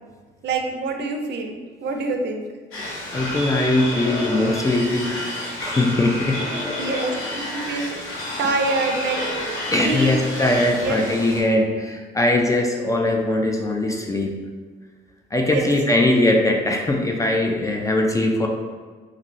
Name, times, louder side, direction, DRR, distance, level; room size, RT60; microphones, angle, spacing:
voice 1, 0.4-1.5 1.8-2.5 6.8-8.0 8.4-10.1 10.8-11.0 15.5-15.7, right 3 dB, 60° right, 3 dB, 0.4 m, -26 dB
sound 1, 2.7-11.4, left 1 dB, 90° left, 0.7 m, -30 dB
voice 2, 2.8-6.8 8.0-8.4 9.7-14.4 15.3-18.5, left 1 dB, 15° left, 1 dB, 0.3 m, -21 dB
2.6 x 2.5 x 3.0 m, 1.5 s
cardioid pair, 90°, 20 cm